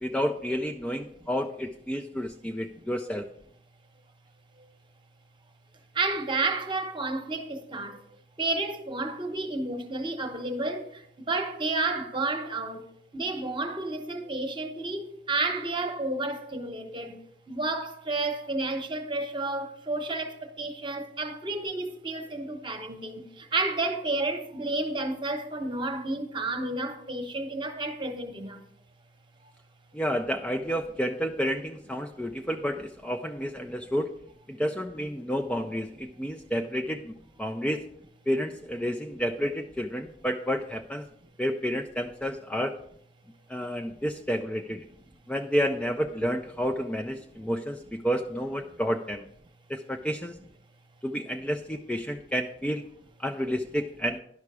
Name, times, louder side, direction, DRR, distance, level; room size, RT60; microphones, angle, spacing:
voice 1, 0.0-3.3 29.9-34.1 34.5-37.8 38.3-41.1 41.4-42.7 43.5-44.8 45.3-49.2 49.7-50.4 51.0-52.9 53.2-54.2, equal, 5° left, 0.3 m, -30 dB
voice 2, 6.0-7.9 8.4-10.9 11.3-12.8 13.1-17.2 17.5-23.2 23.5-28.6, right 2 dB, 30° right, 1.0 m, -31 dB
10.5 x 5.8 x 4.8 m
head